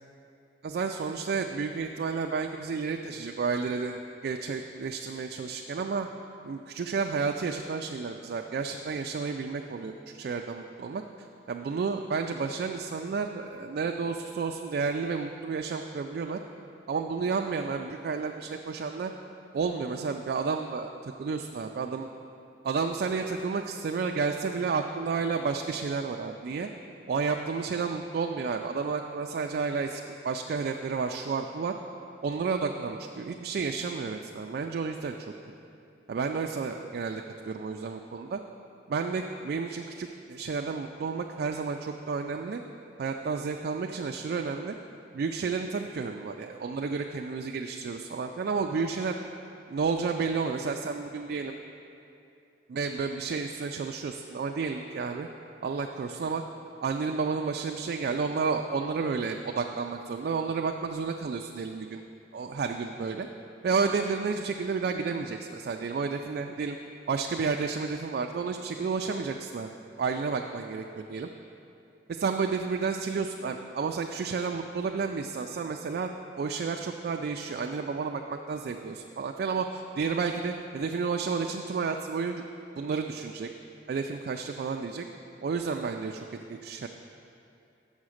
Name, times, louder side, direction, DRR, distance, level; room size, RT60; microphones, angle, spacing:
voice 1, 0.6-6.1 6.4-11.0 11.5-16.4 16.9-19.1 19.5-22.1 22.6-26.7 27.1-31.8 32.2-35.3 36.1-38.4 38.9-42.6 43.0-44.8 45.1-49.2 49.7-51.5 52.7-55.3 55.6-56.4 56.8-62.0 62.3-63.3 63.6-66.8 67.1-69.7 70.0-71.3 72.1-76.1 76.4-82.4 82.8-83.5 83.9-85.1 85.4-86.9, right 5 dB, 55° right, 3 dB, 0.3 m, -31 dB
7.2 x 5.7 x 6.3 m, 2.6 s
head